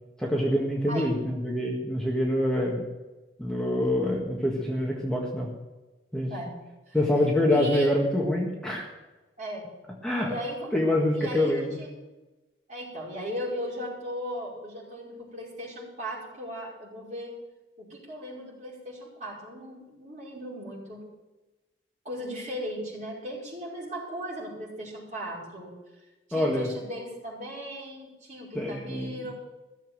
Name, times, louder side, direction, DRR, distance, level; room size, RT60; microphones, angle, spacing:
voice 1, 0.2-2.8 3.4-5.5 6.1-6.3 6.9-8.9 10.0-10.3 10.7-11.7 26.3-26.7 28.5-29.2, left 1 dB, 5° left, -3 dB, 1.7 m, -25 dB
voice 2, 7.5-7.9 9.4-9.7 10.2-10.8 11.1-11.9 12.7-17.3 17.8-21.0 22.0-25.7 26.0-29.3, equal, 40° right, -5 dB, 5.4 m, -37 dB
16.0 x 7.4 x 7.6 m, 1.1 s
head